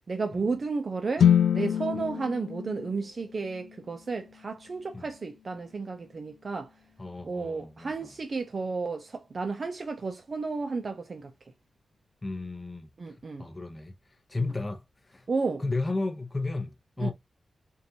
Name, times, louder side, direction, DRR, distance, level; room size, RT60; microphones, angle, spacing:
voice 1, 0.1-6.7 7.2-11.3 13.0-13.4 15.3-15.6 17.0-17.1, right 4 dB, 45° right, 0.5 m, -32 dB
sound 1, 1.2-5.2, left 9 dB, 90° left, 0.3 m, -27 dB
voice 2, 7.0-8.1 12.2-15.3 15.6-17.1, left 3 dB, 20° left, 0.8 m, -34 dB
4.6 x 2.6 x 2.7 m
wide cardioid pair, 125°, 0 cm